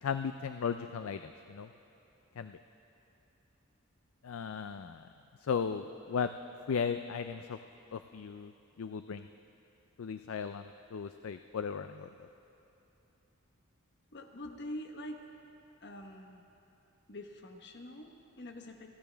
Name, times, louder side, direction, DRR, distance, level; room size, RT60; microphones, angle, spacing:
voice 1, 0.0-1.7 2.4-2.6 4.2-5.0 5.4-6.3 6.7-7.6 7.9-8.5 8.8-9.3 10.0-12.1, left 6 dB, 80° left, 9 dB, 0.4 m, -36 dB
voice 2, 14.1-15.2 15.8-16.4 17.1-19.0, left 1 dB, 55° left, 3 dB, 1.2 m, -45 dB
29.0 x 12.0 x 3.4 m, 2.9 s
head